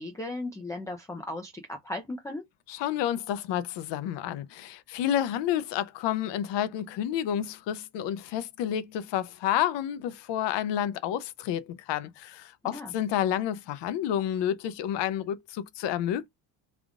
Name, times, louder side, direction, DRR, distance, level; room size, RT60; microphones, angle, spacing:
voice 1, 0.0-2.4 12.7-12.9, left 2 dB, 10° left, 0.4 m, -36 dB
voice 2, 2.7-16.3, left 10 dB, 70° left, 0.7 m, -30 dB
3.6 x 2.4 x 3.5 m
cardioid pair, 145°, 44 cm